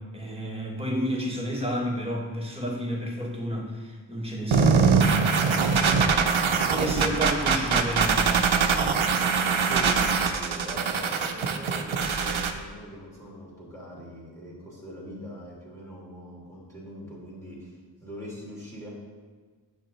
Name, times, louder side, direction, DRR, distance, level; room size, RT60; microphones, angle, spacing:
voice 1, 0.0-8.8, equal, 10° right, -1 dB, 1.6 m, -32 dB
sound 1, 4.5-12.5, right 5 dB, 85° right, 0.7 m, -23 dB
voice 2, 9.6-18.9, equal, 5° left, -6 dB, 2.7 m, -42 dB
8.9 x 6.8 x 4.1 m, 1.4 s
wide cardioid pair, 60°, 46 cm